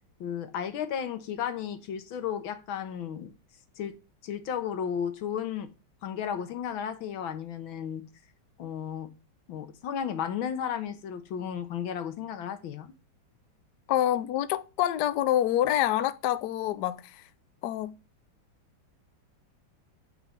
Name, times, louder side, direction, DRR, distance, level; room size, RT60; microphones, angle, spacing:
voice 1, 0.2-3.3 3.8-4.0 4.2-5.7 6.0-8.0 8.6-9.1 9.5-12.9, left 8 dB, 90° left, 1.8 m, -34 dB
voice 2, 13.9-17.2 17.6-17.9, left 12 dB, 70° left, 1.1 m, -27 dB
9.1 x 4.0 x 6.5 m
omnidirectional pair, 2.1 m